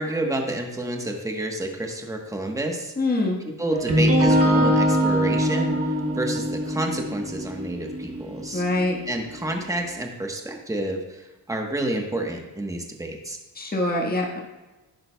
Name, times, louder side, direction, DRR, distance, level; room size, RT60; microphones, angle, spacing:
voice 1, 0.0-2.9 3.6-8.6 9.1-13.4, right 1 dB, 10° right, 2 dB, 1.2 m, -29 dB
voice 2, 3.0-3.4 8.5-9.0 13.5-14.4, left 2 dB, 20° left, -1 dB, 1.5 m, -24 dB
sound 1, 3.7-9.6, equal, 35° right, 1.1 m, -23 dB
11.0 x 9.6 x 2.3 m, 1.1 s
cardioid pair, 90°, 41 cm